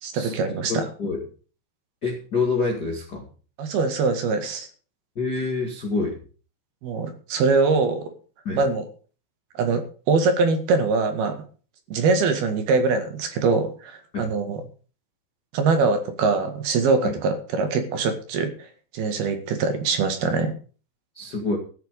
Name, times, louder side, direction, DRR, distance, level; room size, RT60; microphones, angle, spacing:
voice 1, 0.0-0.8 3.6-4.7 6.8-8.1 8.5-8.8 9.5-11.4 11.9-14.6 15.5-18.7 18.9-20.5, right 4 dB, 60° right, 6 dB, 3.5 m, -23 dB
voice 2, 0.7-1.2 2.0-3.3 5.1-6.2 8.4-8.6 14.1-14.3 17.0-17.1 20.2-20.3 21.1-21.6, left 3 dB, 35° left, 1 dB, 1.7 m, -27 dB
14.5 x 7.5 x 6.5 m, 0.38 s
omnidirectional pair, 5.4 m